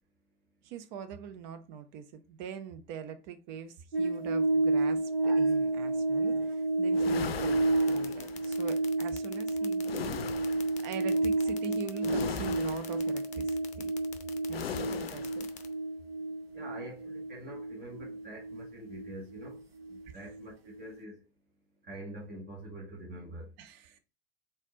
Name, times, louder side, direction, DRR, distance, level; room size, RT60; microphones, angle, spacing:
voice 1, 0.6-10.2 10.5-13.9 14.5-15.5 20.1-20.3 23.6-24.0, right 7 dB, 50° right, 0.8 m, -43 dB
sound 1, 3.9-20.5 20.8-20.9, right 2 dB, 80° right, 0.8 m, -31 dB
sound 2, 6.9-8.5 9.8-10.8 12.0-13.1 14.5-15.5, left 8 dB, 80° left, 0.4 m, -39 dB
sound 3, 7.8-15.7, left 9 dB, 25° left, 0.6 m, -46 dB
voice 2, 16.5-19.6 19.9-21.2 21.8-23.5, right 1 dB, 35° right, 1.5 m, -45 dB
4.2 x 3.7 x 2.9 m
figure-of-eight pair, 75°, 29 cm